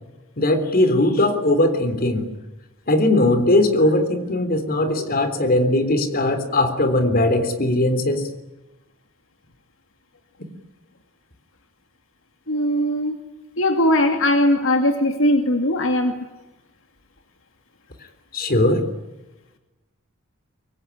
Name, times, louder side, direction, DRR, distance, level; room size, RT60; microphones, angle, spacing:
voice 1, 0.4-2.3 2.9-8.3 18.3-18.8, left 1 dB, 45° left, 9 dB, 3.6 m, -19 dB
voice 2, 12.5-13.2 13.6-16.1, left 1 dB, 70° left, 6 dB, 2.5 m, -19 dB
24.5 x 23.5 x 9.9 m, 1.0 s
head